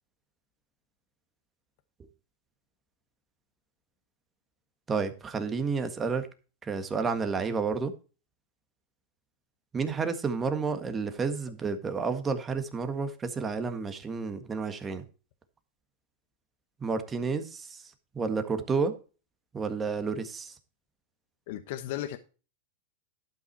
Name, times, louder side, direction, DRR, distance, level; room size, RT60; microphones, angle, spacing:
voice 1, 4.9-6.3 6.6-7.9 9.7-15.0 16.8-17.8 18.1-18.9 19.5-20.5, right 5 dB, 20° right, 1.6 m, -30 dB
voice 2, 21.5-22.2, left 13 dB, 60° left, 1.1 m, -35 dB
12.0 x 5.7 x 4.6 m
hypercardioid pair, 120°, 0 cm